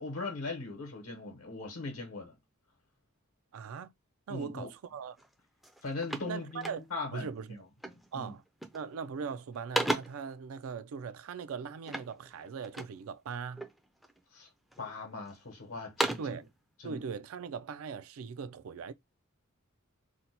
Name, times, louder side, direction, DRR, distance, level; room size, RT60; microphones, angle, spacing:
voice 1, 0.0-2.3 4.3-4.7 5.8-7.6 7.9-8.3 14.3-14.5 14.8-16.4 16.8-17.0, left 3 dB, 80° left, 0.9 m, -40 dB
voice 2, 3.5-3.9 4.3-5.2 6.3-6.8 7.1-7.6 8.1-8.4 8.7-13.7 16.2-16.5 16.8-18.9, right 6 dB, 70° right, 0.4 m, -40 dB
sound 1, 5.2-5.3 5.6-7.2 7.8-8.1 8.5-9.0 9.3-10.3 11.8-13.0 13.6-14.2 14.7-15.4 15.7-16.4, right 1 dB, ahead, 0.4 m, -36 dB
2.7 x 2.1 x 4.0 m
head